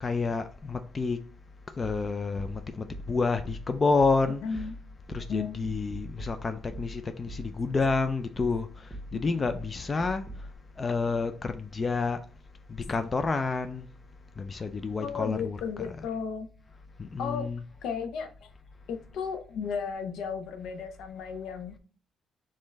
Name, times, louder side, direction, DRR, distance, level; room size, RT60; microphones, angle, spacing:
voice 1, 0.0-1.3 1.8-4.7 5.1-10.3 10.8-12.2 12.7-13.9 14.4-16.0 17.0-17.6, left 4 dB, 35° left, 0.4 m, -29 dB
sound 1, 2.4-10.5, right 1 dB, 15° right, 1.3 m, -43 dB
voice 2, 4.4-4.8 5.3-5.6 9.3-9.4 15.0-16.5 17.2-17.5 17.8-18.5 18.9-21.8, left 6 dB, 80° left, 0.5 m, -34 dB
4.3 x 3.6 x 3.2 m
cardioid pair, 90°, 0 cm